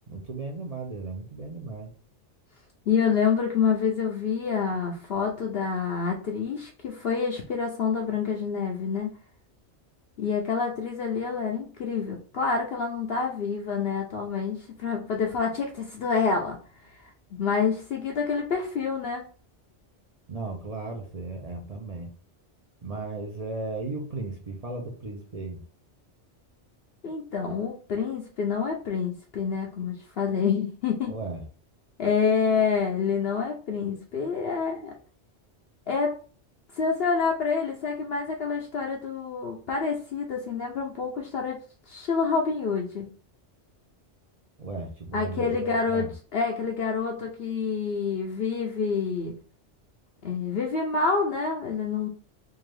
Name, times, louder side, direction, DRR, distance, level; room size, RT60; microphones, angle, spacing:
voice 1, 0.1-1.9 20.3-22.1 22.8-25.6 31.1-31.4 44.6-46.1, right 3 dB, 40° right, 2 dB, 0.7 m, -35 dB
voice 2, 2.9-9.1 10.2-16.6 17.3-19.3 27.0-31.2 32.0-34.9 35.9-36.2 36.7-43.1 45.1-49.3 50.2-52.1, left 5 dB, 65° left, 0 dB, 0.8 m, -27 dB
3.7 x 2.6 x 3.2 m, 0.39 s
omnidirectional pair, 1.2 m